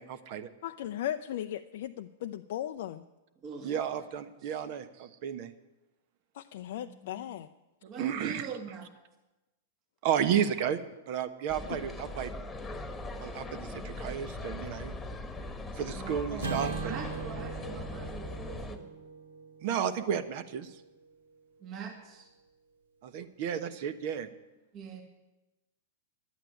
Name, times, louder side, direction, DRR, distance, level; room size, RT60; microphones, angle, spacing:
voice 1, 0.0-0.5 3.6-5.5 8.0-8.5 10.0-10.8 11.1-12.3 13.2-15.0 15.8-17.0 19.6-20.7 23.0-24.3, right 8 dB, 55° right, 11 dB, 1.1 m, -32 dB
voice 2, 0.6-3.0 6.3-7.5 11.7-11.8, left 11 dB, 60° left, 7 dB, 0.5 m, -37 dB
voice 3, 3.4-4.0 4.4-4.6 6.8-7.3 7.9-8.9 15.9-18.9 21.6-22.3 24.7-25.0, right 5 dB, 40° right, 3 dB, 2.1 m, -43 dB
sound 1, 11.5-18.8, left 2 dB, 10° left, 1.4 m, -40 dB
Acoustic guitar / Strum, 16.4-20.8, right 5 dB, 80° right, 2.0 m, -40 dB
11.0 x 8.9 x 9.9 m, 1.0 s
hypercardioid pair, 105°, 0 cm